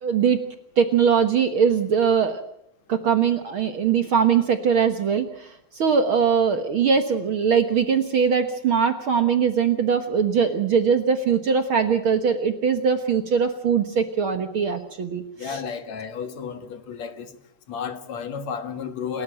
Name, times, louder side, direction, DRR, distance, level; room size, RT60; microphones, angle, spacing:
voice 1, 0.0-0.4 0.8-2.4 2.9-15.6, right 6 dB, 60° right, 1.4 m, -21 dB
voice 2, 15.4-17.3 17.7-19.2, left 6 dB, 55° left, 2.5 m, -32 dB
29.0 x 13.5 x 8.9 m
omnidirectional pair, 4.2 m